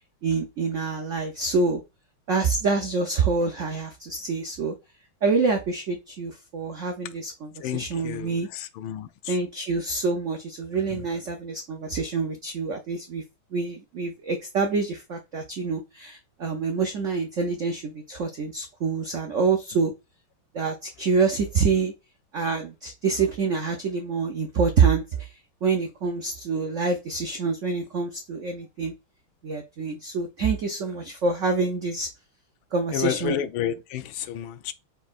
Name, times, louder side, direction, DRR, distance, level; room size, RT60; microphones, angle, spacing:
voice 1, 0.2-1.8 2.3-4.7 5.2-8.5 9.3-13.2 13.5-19.9 20.5-21.9 22.3-25.3 25.6-28.9 29.4-32.1 32.7-33.3, right 4 dB, 75° right, 0.6 m, -26 dB
voice 2, 7.6-9.4 10.9-11.0 32.9-34.7, left 9 dB, 80° left, 1.3 m, -31 dB
4.5 x 4.0 x 2.4 m
omnidirectional pair, 2.2 m